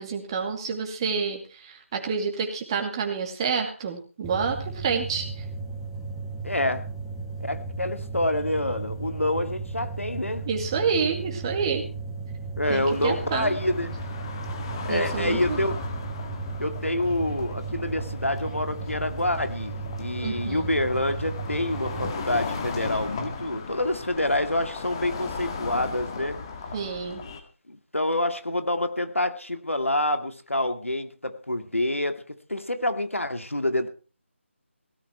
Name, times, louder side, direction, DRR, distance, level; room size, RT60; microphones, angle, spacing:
voice 1, 0.0-5.4 10.5-11.8 12.7-13.6 14.9-15.6 20.2-20.7 26.7-27.2, right 5 dB, 20° right, 4 dB, 2.3 m, -28 dB
sound 1, 4.2-22.1, right 4 dB, ahead, 1.2 m, -35 dB
voice 2, 6.4-6.9 7.4-10.5 12.6-14.0 14.8-15.8 16.6-26.4 27.7-33.9, left 1 dB, 80° left, 8 dB, 2.2 m, -27 dB
sound 2, 12.6-27.4, left 4 dB, 25° left, 1.9 m, -36 dB
17.0 x 13.5 x 4.5 m, 0.37 s
figure-of-eight pair, 155°, 7 cm